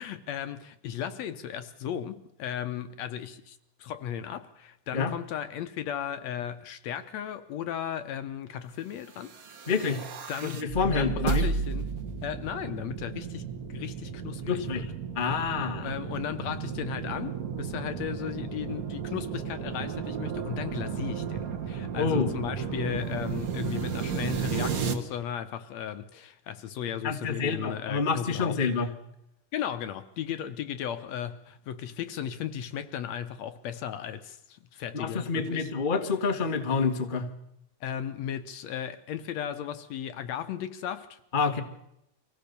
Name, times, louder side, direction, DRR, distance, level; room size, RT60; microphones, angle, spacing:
voice 1, 0.0-9.3 10.3-11.9 12.2-14.8 15.3-28.6 29.5-35.7 37.8-41.2, left 9 dB, 70° left, 1.9 m, -36 dB
sound 1, 9.2-24.9, right 6 dB, 40° right, 1.4 m, -33 dB
voice 2, 9.7-10.0 10.4-11.5 14.4-15.9 22.0-22.3 27.0-28.9 34.9-37.3 41.3-41.6, left 5 dB, 45° left, 0.6 m, -28 dB
24.5 x 16.5 x 6.8 m
omnidirectional pair, 3.6 m